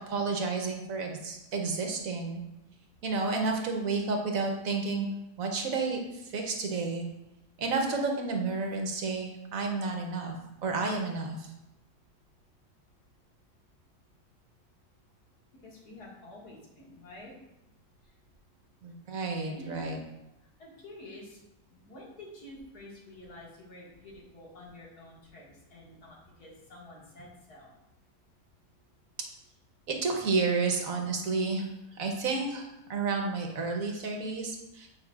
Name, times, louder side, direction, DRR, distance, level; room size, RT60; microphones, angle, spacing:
voice 1, 0.1-2.4 3.0-5.1 5.4-7.0 7.6-10.3 10.6-11.5 18.8-20.0 29.9-34.9, right 4 dB, 65° right, 2 dB, 1.2 m, -31 dB
voice 2, 15.5-17.3 18.0-18.2 18.9-19.0 19.4-19.9 20.6-21.4 21.7-27.7, left 1 dB, 80° left, -4 dB, 2.3 m, -49 dB
8.3 x 5.3 x 2.4 m, 0.92 s
omnidirectional pair, 1.7 m